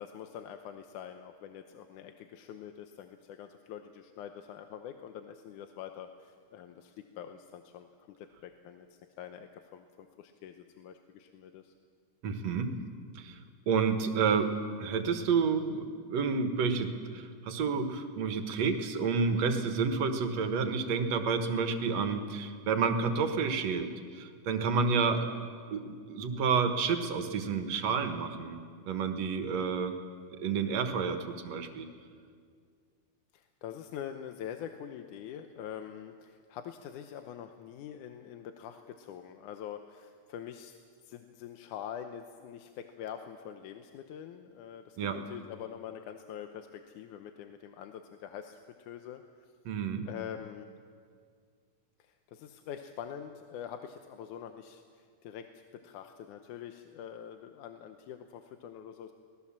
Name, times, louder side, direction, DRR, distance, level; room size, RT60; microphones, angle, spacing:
voice 1, 0.0-7.9 8.2-11.7 33.3-40.7 41.0-49.5 50.1-50.7 52.0-59.1, left 9 dB, 80° left, 7 dB, 2.3 m, -45 dB
voice 2, 12.2-12.8 13.1-13.4 13.7-25.3 25.7-28.6 28.9-30.0 30.4-31.9 45.0-45.2 49.7-50.1, right 5 dB, 60° right, 7 dB, 2.4 m, -30 dB
24.5 x 19.0 x 7.3 m, 2.1 s
omnidirectional pair, 3.6 m